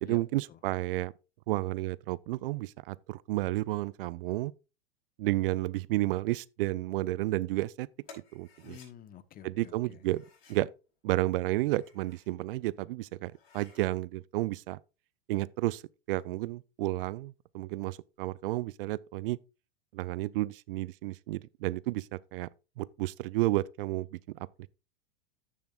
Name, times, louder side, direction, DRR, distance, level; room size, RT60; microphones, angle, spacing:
voice 1, 0.0-1.1 1.5-4.5 5.2-7.9 8.3-8.8 9.4-10.7 11.0-14.8 15.3-15.8 16.1-19.4 19.9-22.5 22.8-24.1 24.3-24.5, right 17 dB, 65° right, 0.5 m, -31 dB
sound 1, 8.0-8.9 10.0-10.7 11.6-12.3 12.8-12.9 13.3-13.9, left 5 dB, 75° left, 5.2 m, -56 dB
voice 2, 8.6-10.0, left 10 dB, 30° left, 0.9 m, -49 dB
14.0 x 6.9 x 2.3 m
hypercardioid pair, 110°, 30 cm